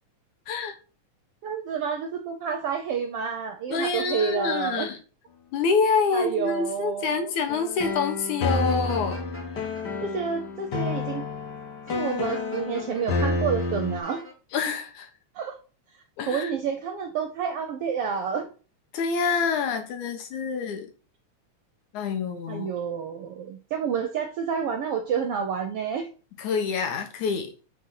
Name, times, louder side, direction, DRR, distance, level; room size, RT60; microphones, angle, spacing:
voice 1, 0.5-0.8 3.7-5.0 5.5-9.2 14.5-15.1 16.2-16.5 18.9-20.9 21.9-22.7 26.4-27.5, left 5 dB, 75° left, 2.7 m, -27 dB
voice 2, 1.4-4.9 6.1-7.3 9.6-9.7 10.0-11.3 11.9-14.2 15.3-15.6 16.3-18.5 22.5-26.1, right 7 dB, 70° right, 1.5 m, -29 dB
sound 1, 7.5-14.0, left 3 dB, 50° left, 1.4 m, -29 dB
sound 2, 8.5-9.8 11.9-13.3 13.6-14.3, equal, 5° left, 1.9 m, -45 dB
7.3 x 4.4 x 5.7 m
omnidirectional pair, 3.4 m